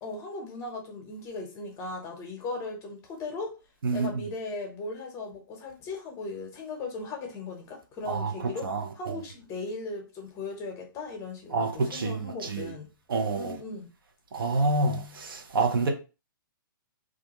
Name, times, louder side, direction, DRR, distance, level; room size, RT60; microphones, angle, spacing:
voice 1, 0.0-3.6 3.9-12.9 13.4-13.9, left 3 dB, 25° left, 0.8 m, -38 dB
voice 2, 8.6-9.2 11.5-12.7 13.1-13.5 14.3-15.9, right 3 dB, 80° right, 0.7 m, -28 dB
2.4 x 2.2 x 2.9 m
hypercardioid pair, 135°, 12 cm